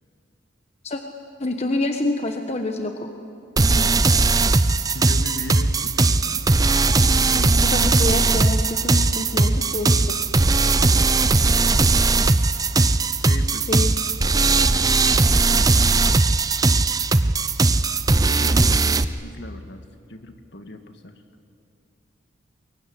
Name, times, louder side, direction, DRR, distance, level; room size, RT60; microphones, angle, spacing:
voice 1, 1.4-3.1 3.6-3.9 7.3-10.0 13.7-13.9, left 2 dB, 30° left, 5 dB, 1.2 m, -27 dB
sound 1, 3.6-19.0, right 3 dB, 20° right, 0.5 m, -18 dB
voice 2, 4.9-6.5 11.2-11.8 13.1-13.7 15.5-16.1 18.2-19.8 20.1-21.2, left 1 dB, 55° left, 7 dB, 1.8 m, -38 dB
22.5 x 22.5 x 9.9 m, 2.5 s
head